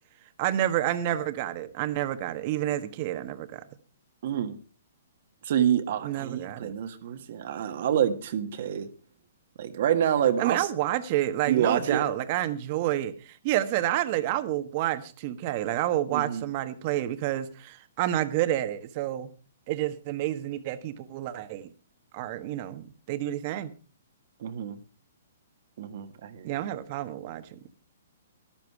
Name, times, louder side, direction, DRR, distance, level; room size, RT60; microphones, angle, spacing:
voice 1, 0.4-3.6 6.0-6.7 10.4-19.3 19.7-21.7 22.1-23.7 26.4-27.6, right 13 dB, 40° right, 1.4 m, -29 dB
voice 2, 4.2-4.5 5.4-8.9 9.6-10.7 11.5-12.1 16.1-16.4 24.4-24.8 25.8-26.6, right 9 dB, 55° right, 1.6 m, -27 dB
13.0 x 12.0 x 4.8 m
hypercardioid pair, 145°, 0 cm